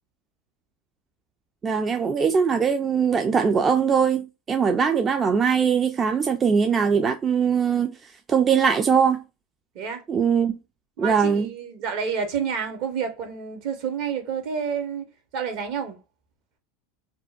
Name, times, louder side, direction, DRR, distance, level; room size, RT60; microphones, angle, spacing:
voice 1, 1.6-9.2 10.1-10.6 11.0-11.5, right 6 dB, 30° right, 0.3 m, -21 dB
voice 2, 11.0-15.1 15.3-16.0, right 6 dB, 60° right, 0.8 m, -29 dB
2.6 x 2.1 x 2.4 m
hypercardioid pair, 85°, 0 cm